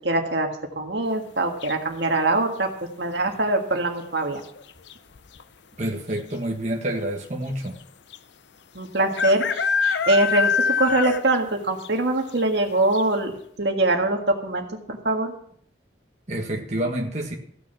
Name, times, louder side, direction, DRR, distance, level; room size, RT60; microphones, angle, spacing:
voice 1, 0.0-0.5 0.8-2.7 3.0-4.4 8.8-13.3 13.6-15.3, right 2 dB, 65° right, 3 dB, 1.8 m, -23 dB
sound 1, 1.6-2.1 3.9-4.3 4.5-4.6 4.9-5.4 6.2-6.3 6.5-6.6 8.1-8.2 9.1-11.4 11.8-11.9 12.4-12.5 12.9-13.0, left 6 dB, 70° left, 0.6 m, -24 dB
voice 2, 5.8-7.8 16.3-17.3, right 1 dB, 40° right, 0 dB, 1.6 m, -28 dB
15.5 x 6.2 x 7.1 m, 0.65 s
head